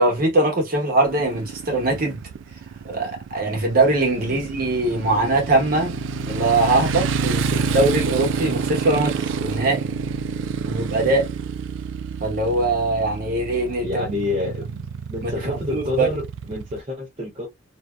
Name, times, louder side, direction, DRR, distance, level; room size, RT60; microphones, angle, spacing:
voice 1, 0.0-2.2 2.8-9.9 10.6-11.3 12.2-14.0 15.2-15.3 15.7-16.1, right 2 dB, 50° right, 1.0 m, -21 dB
Motorcycle, 1.0-16.8, right 5 dB, 85° right, 0.3 m, -28 dB
voice 2, 13.8-17.5, left 2 dB, 35° right, 0.6 m, -28 dB
2.6 x 2.1 x 2.3 m
head